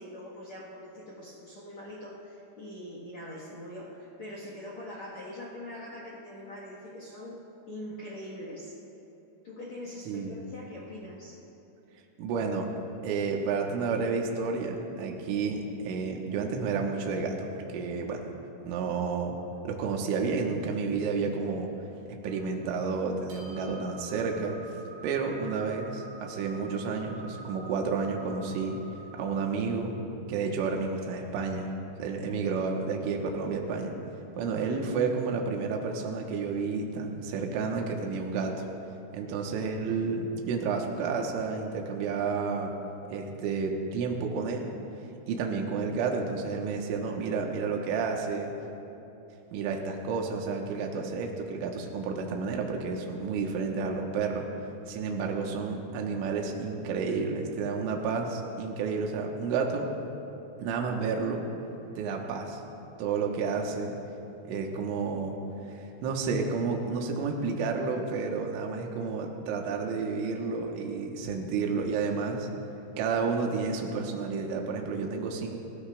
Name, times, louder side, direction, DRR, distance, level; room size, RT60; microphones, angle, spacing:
voice 1, 0.0-7.4 7.7-8.7 9.4-11.4 34.4-34.6 39.2-39.3, left 1 dB, 85° left, -4 dB, 1.5 m, -43 dB
voice 2, 10.1-10.4 12.2-12.7 13.0-18.3 18.6-19.4 19.6-21.7 22.2-24.6 25.0-28.8 29.1-29.9 30.3-31.7 32.0-33.9 34.4-38.7 39.1-42.7 43.1-44.7 45.3-48.5 49.5-54.5 54.9-59.9 60.6-61.4 62.0-62.6 63.0-64.0 64.5-65.4 65.7-72.5 73.0-75.6, right 4 dB, 75° right, 1 dB, 3.4 m, -31 dB
sound 1, 22.2-29.4, right 2 dB, 55° right, 3.9 m, -48 dB
29.0 x 15.0 x 2.4 m, 3.0 s
omnidirectional pair, 6.0 m